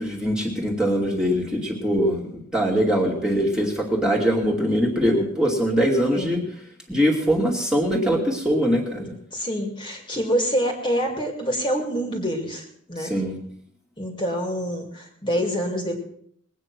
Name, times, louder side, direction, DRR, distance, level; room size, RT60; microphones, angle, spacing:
voice 1, 0.0-6.4 6.9-9.1 13.0-13.4, equal, 5° right, -1 dB, 2.4 m, -22 dB
voice 2, 9.3-13.1 14.0-16.0, equal, 25° left, 1 dB, 2.3 m, -26 dB
20.5 x 9.0 x 6.0 m, 0.65 s
head